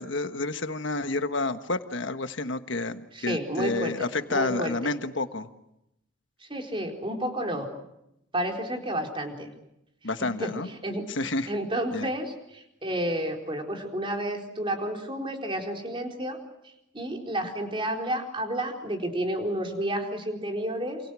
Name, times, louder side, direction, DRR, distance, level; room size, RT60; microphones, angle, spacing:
voice 1, 0.0-5.5 10.0-10.7 11.1-11.5 11.9-12.1, left 2 dB, 65° left, 9 dB, 1.5 m, -30 dB
voice 2, 3.1-3.9 4.3-4.9 6.4-7.7 8.3-9.5 10.2-10.5 10.8-11.0 11.5-16.4 16.9-21.0, right 1 dB, 25° right, 2 dB, 4.2 m, -31 dB
28.5 x 27.5 x 6.3 m, 0.83 s
head